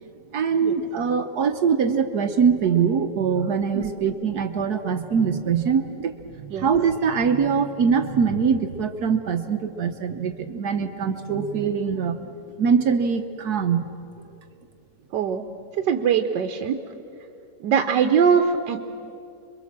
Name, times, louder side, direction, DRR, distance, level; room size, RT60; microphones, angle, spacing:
voice 1, 0.3-12.2 12.6-13.9, right 6 dB, 65° right, 6 dB, 1.4 m, -23 dB
voice 2, 15.7-16.8 17.6-18.8, right 7 dB, 85° right, 6 dB, 1.5 m, -21 dB
27.5 x 22.5 x 7.4 m, 2.7 s
omnidirectional pair, 1.8 m